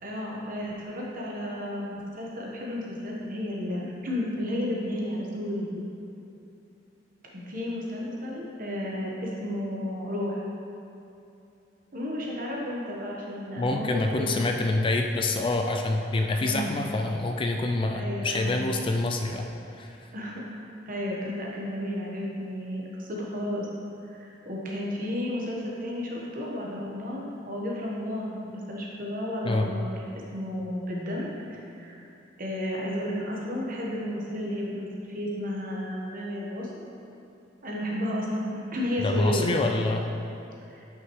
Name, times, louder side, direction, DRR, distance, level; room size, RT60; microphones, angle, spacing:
voice 1, 0.0-5.8 7.3-10.5 11.9-14.4 16.4-16.8 17.9-18.7 20.1-23.7 24.1-32.0 32.4-36.7 37.6-39.9 40.7-40.9, left 1 dB, 45° right, -3 dB, 1.2 m, -32 dB
voice 2, 13.6-19.5 19.7-20.1 29.4-29.7 39.0-40.0, left 2 dB, 25° left, 4 dB, 0.3 m, -26 dB
9.3 x 5.8 x 3.1 m, 2.8 s
head